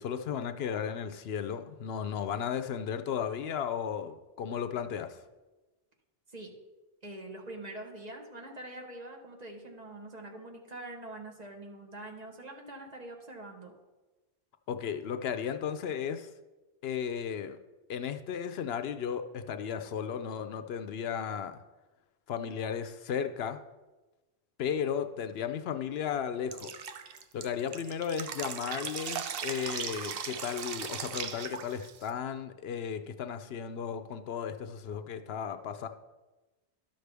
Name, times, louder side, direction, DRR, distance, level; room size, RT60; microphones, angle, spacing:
voice 1, 0.0-5.2 14.7-16.3 16.8-17.6 17.9-21.6 22.3-23.6 24.6-26.7 27.3-35.9, left 8 dB, 75° left, 9 dB, 0.8 m, -35 dB
voice 2, 7.0-13.7, right 1 dB, 40° right, 1 dB, 1.2 m, -44 dB
Drip, 26.5-32.1, right 7 dB, 65° right, 0.8 m, -38 dB
12.0 x 6.5 x 3.4 m, 1.1 s
omnidirectional pair, 1.1 m